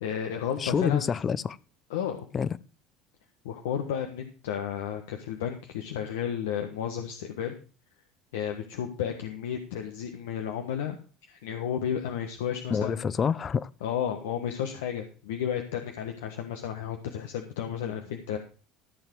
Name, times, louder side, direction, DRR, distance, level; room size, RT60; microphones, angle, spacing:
voice 1, 0.0-1.1 1.9-2.3 3.4-7.5 8.3-11.0 11.2-13.2 13.8-18.4, left 9 dB, 80° left, 1.2 m, -32 dB
voice 2, 0.6-1.6 2.3-2.5 12.7-13.7, left 6 dB, 35° left, 0.7 m, -27 dB
14.5 x 7.0 x 4.6 m
hypercardioid pair, 80°, 0 cm